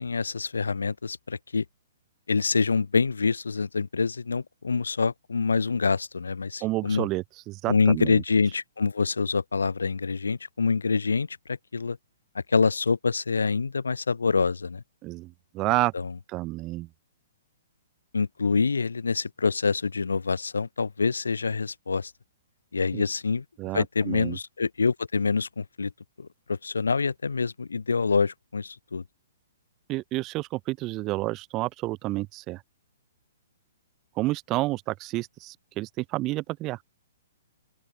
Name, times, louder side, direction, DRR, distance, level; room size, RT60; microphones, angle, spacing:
voice 1, 0.0-1.6 2.3-7.1 7.7-12.0 12.3-14.8 15.9-16.2 18.1-22.1 22.7-23.4 23.7-25.9 26.2-29.0, left 4 dB, 75° left, 0.6 m, -26 dB
voice 2, 6.6-8.2 15.0-15.9 16.3-16.9 22.9-23.0 23.6-24.4 29.9-32.6 34.2-36.8, right 19 dB, 30° right, 0.5 m, -30 dB
open air
figure-of-eight pair, 120°, 0 cm